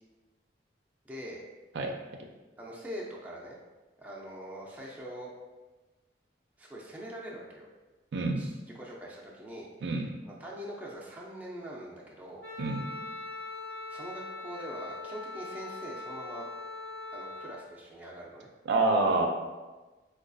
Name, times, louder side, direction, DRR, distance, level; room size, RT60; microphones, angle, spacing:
voice 1, 1.0-1.4 2.6-3.6 4.0-5.3 6.6-7.7 8.4-12.4 13.9-16.5 17.1-18.5, equal, 10° right, -4 dB, 0.4 m, -43 dB
voice 2, 8.1-8.5 9.8-10.1 12.6-12.9 18.7-19.3, right 2 dB, 70° right, 3 dB, 0.4 m, -27 dB
Wind instrument woodwind instrument, 12.4-17.6, left 2 dB, 60° left, 0.5 m, -41 dB
4.6 x 2.3 x 2.5 m, 1.2 s
head